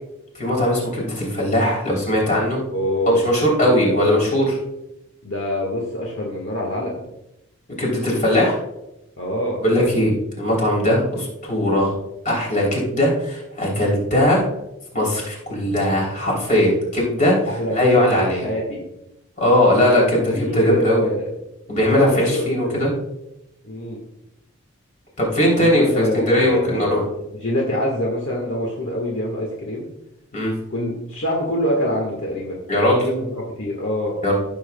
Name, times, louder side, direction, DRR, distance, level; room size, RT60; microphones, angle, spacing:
voice 1, 0.4-2.6 3.1-4.6 7.8-8.6 9.6-11.9 12.2-14.4 14.9-18.5 19.4-21.1 21.7-22.9 25.2-27.0 30.3-30.5 32.7-33.0 34.2-34.3, left 1 dB, 35° left, -2 dB, 3.3 m, -19 dB
voice 2, 2.7-3.2 3.6-4.1 5.2-7.0 9.2-9.6 17.4-18.8 20.3-21.3 21.9-22.7 23.6-24.0 25.6-27.0 27.4-29.9 30.7-32.6 32.9-34.1, left 1 dB, 60° left, -1 dB, 1.6 m, -25 dB
15.0 x 7.3 x 2.3 m, 0.88 s
head